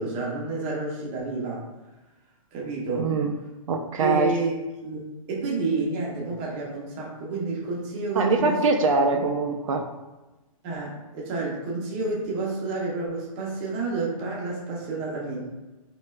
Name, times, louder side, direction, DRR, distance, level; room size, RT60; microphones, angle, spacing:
voice 1, 0.0-1.6 2.5-3.1 4.0-4.5 4.8-5.0 5.3-8.6 9.1-9.2 10.6-15.5, right 3 dB, 20° right, -3 dB, 0.6 m, -29 dB
voice 2, 3.0-3.3 3.7-4.3 8.1-9.8, right 4 dB, 65° right, 3 dB, 0.4 m, -23 dB
4.4 x 3.1 x 2.2 m, 1.1 s
hypercardioid pair, 170°, 18 cm